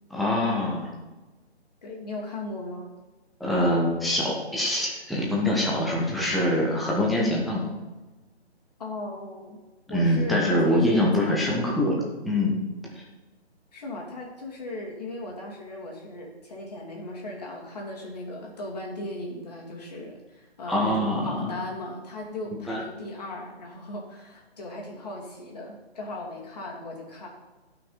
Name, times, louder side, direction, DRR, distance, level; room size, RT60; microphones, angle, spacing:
voice 1, 0.1-0.9 3.4-7.6 9.9-12.0 12.2-12.6 20.7-21.5 22.7-22.8, left 1 dB, ahead, -4 dB, 0.4 m, -24 dB
voice 2, 1.8-2.9 8.8-9.6 9.9-11.7 13.7-27.3, left 2 dB, 35° left, -2 dB, 2.8 m, -37 dB
16.5 x 5.8 x 4.1 m, 1.2 s
hypercardioid pair, 170°, 33 cm